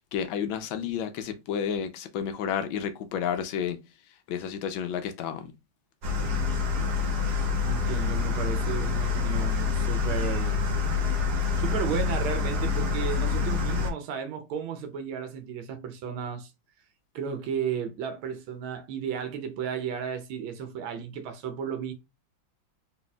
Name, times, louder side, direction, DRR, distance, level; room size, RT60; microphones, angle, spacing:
voice 1, 0.1-3.8 4.3-5.5, left 8 dB, 75° left, 1.4 m, -31 dB
sound 1, 6.0-13.9, left 5 dB, 60° right, 1.5 m, -27 dB
voice 2, 7.7-10.6 11.6-16.5 17.1-21.9, right 7 dB, 90° right, 1.5 m, -34 dB
4.1 x 3.7 x 2.3 m
omnidirectional pair, 2.2 m